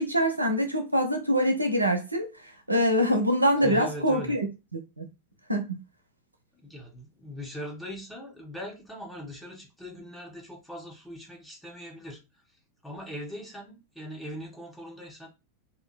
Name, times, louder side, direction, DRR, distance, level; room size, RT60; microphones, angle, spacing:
voice 1, 0.0-2.3 2.7-4.4 4.7-5.0 5.5-5.6, equal, 85° right, 0.6 m, -24 dB
voice 2, 3.6-4.4 6.6-12.2 12.8-15.3, left 1 dB, 5° left, 0.9 m, -40 dB
2.8 x 2.7 x 2.2 m
figure-of-eight pair, 90°, 0 cm